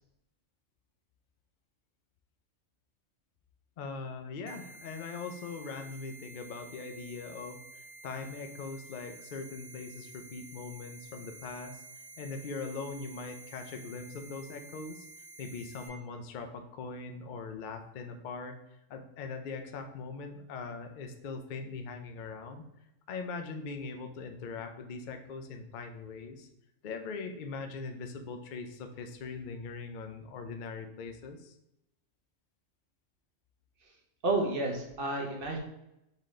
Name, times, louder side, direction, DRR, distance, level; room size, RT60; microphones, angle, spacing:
voice 1, 3.8-11.8 12.2-15.1 15.4-18.6 18.9-22.6 23.1-26.5 26.8-31.6, left 4 dB, 55° left, 6 dB, 0.6 m, -41 dB
sound 1, 4.5-15.9, right 2 dB, 80° right, 1.1 m, -51 dB
voice 2, 34.2-35.6, right 2 dB, 50° right, 1 dB, 1.0 m, -30 dB
4.1 x 3.7 x 3.2 m, 0.86 s
omnidirectional pair, 1.3 m